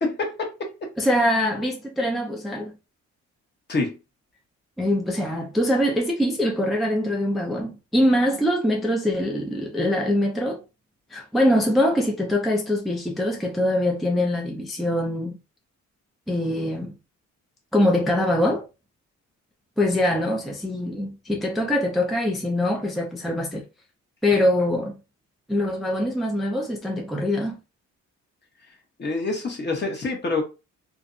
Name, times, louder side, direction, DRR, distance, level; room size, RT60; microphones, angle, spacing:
voice 1, 0.0-0.9 3.7-4.0 29.0-30.4, left 3 dB, 35° left, 0.9 m, -26 dB
voice 2, 1.0-2.7 4.8-10.6 11.1-15.4 16.3-16.9 17.7-18.6 19.8-23.6 24.2-25.0 25.5-27.6, left 1 dB, ahead, 0.4 m, -23 dB
2.5 x 2.0 x 2.5 m
cardioid pair, 90°, 30 cm